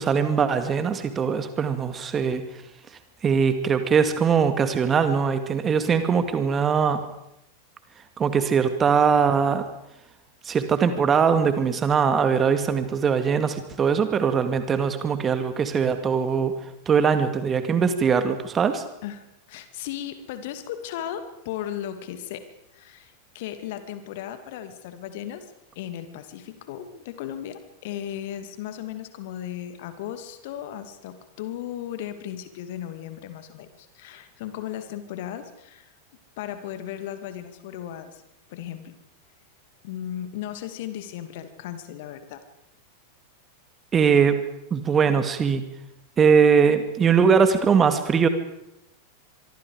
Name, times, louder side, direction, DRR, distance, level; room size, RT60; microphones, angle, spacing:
voice 1, 0.0-2.4 3.2-7.0 8.2-9.7 10.5-16.5 16.9-18.8 43.9-44.4 44.7-45.6 46.2-48.3, right 6 dB, 20° right, 10 dB, 2.2 m, -21 dB
voice 2, 19.0-22.5 22.7-35.9 36.4-38.2 38.5-39.0 39.8-42.4, left 11 dB, 50° left, 10 dB, 2.4 m, -36 dB
25.0 x 24.0 x 5.0 m, 0.83 s
figure-of-eight pair, 90°, 0 cm